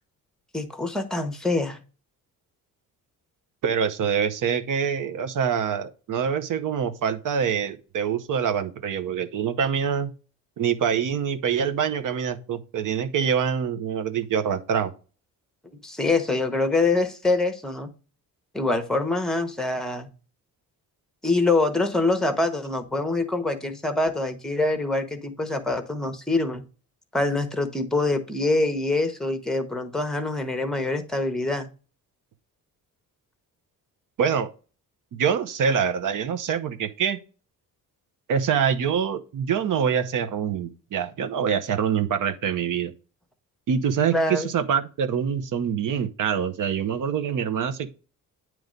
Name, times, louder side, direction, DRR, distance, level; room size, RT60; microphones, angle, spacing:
voice 1, 0.5-1.8 15.8-17.9 18.5-20.1 21.2-26.6 27.1-31.7 44.1-44.5, left 2 dB, ahead, 0.9 m, -25 dB
voice 2, 3.6-10.1 10.6-14.9 34.2-34.5 35.1-37.2 38.3-42.9 43.7-47.9, right 7 dB, 60° right, 0.9 m, -25 dB
9.5 x 3.2 x 5.1 m
cardioid pair, 140°, 35 cm